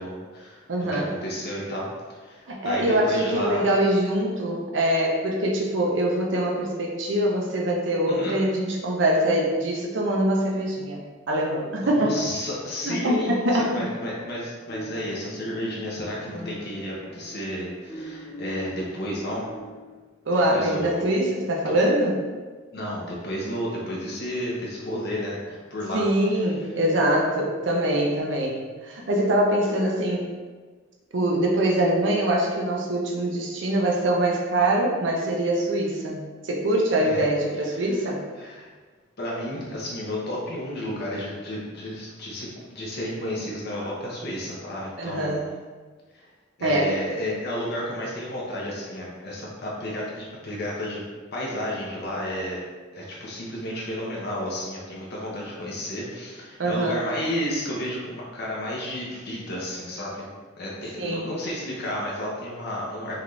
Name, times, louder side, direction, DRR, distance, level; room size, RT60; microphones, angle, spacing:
voice 1, 0.0-3.6 8.1-8.4 11.8-19.4 20.5-21.1 21.7-21.8 22.7-26.0 37.0-37.3 37.7-37.8 38.4-38.7 39.2-45.5 46.1-46.3 46.6-51.0 51.3-52.6 52.9-63.2, left 1 dB, 60° left, -5 dB, 0.8 m, -32 dB
voice 2, 0.7-1.1 2.5-11.0 11.3-12.2 12.8-13.7 20.3-22.1 25.9-30.3 31.1-38.2 45.0-45.5 46.6-46.9 56.6-57.0 60.9-61.3, right 1 dB, 80° right, -2 dB, 0.7 m, -23 dB
sound 1, 13.1-14.4 14.7-20.0, equal, 35° left, 1.2 m, -42 dB
5.6 x 2.6 x 3.2 m, 1.4 s
head